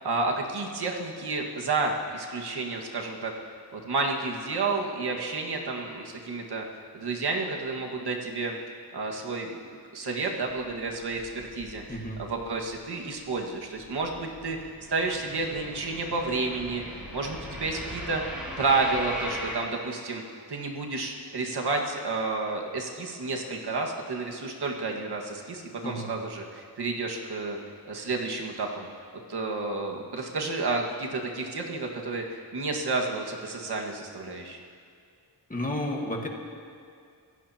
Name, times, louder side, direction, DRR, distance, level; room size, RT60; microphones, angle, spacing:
voice 1, 0.0-3.3 3.7-6.7 6.9-8.6 8.9-9.6 9.9-14.6 14.9-16.8 17.1-18.2 18.6-20.2 20.5-27.6 27.9-28.9 29.3-34.6, right 3 dB, 75° right, 0 dB, 1.8 m, -30 dB
sound 1, 10.5-12.8 13.1-19.5, equal, 5° right, 4.6 m, -39 dB
voice 2, 11.9-12.2 25.8-26.1 35.5-36.3, left 1 dB, 20° left, 1 dB, 1.6 m, -31 dB
26.5 x 15.5 x 2.9 m, 2.3 s
wide cardioid pair, 165°, 40 cm